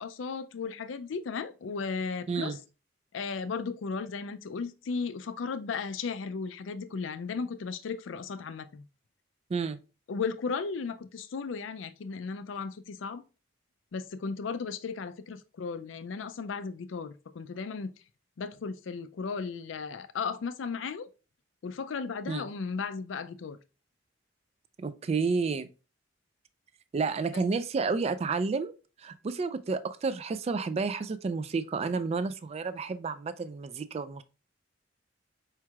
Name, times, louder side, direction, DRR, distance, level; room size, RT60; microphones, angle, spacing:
voice 1, 0.0-2.5 3.1-8.8 10.1-13.2 13.9-17.9 18.4-21.1 21.6-23.6 27.3-27.4, left 5 dB, 85° left, 0.4 m, -35 dB
voice 2, 24.8-25.7 26.9-28.7 29.0-34.2, right 4 dB, 35° right, 0.3 m, -30 dB
4.5 x 4.5 x 2.3 m
head